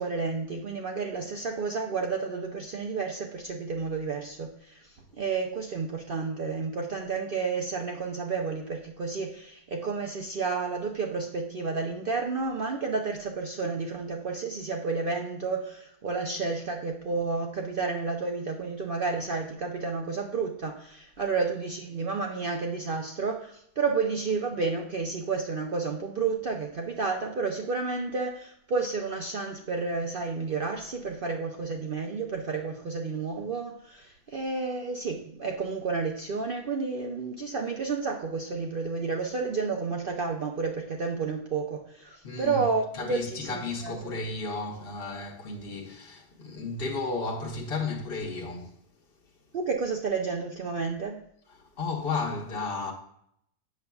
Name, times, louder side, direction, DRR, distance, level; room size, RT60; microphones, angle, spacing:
voice 1, 0.0-44.2 49.5-51.2, right 4 dB, 75° right, 0.5 m, -31 dB
voice 2, 42.2-42.7 42.9-48.8 51.6-52.9, left 3 dB, 45° left, 1.0 m, -33 dB
8.2 x 6.5 x 2.3 m
omnidirectional pair, 1.7 m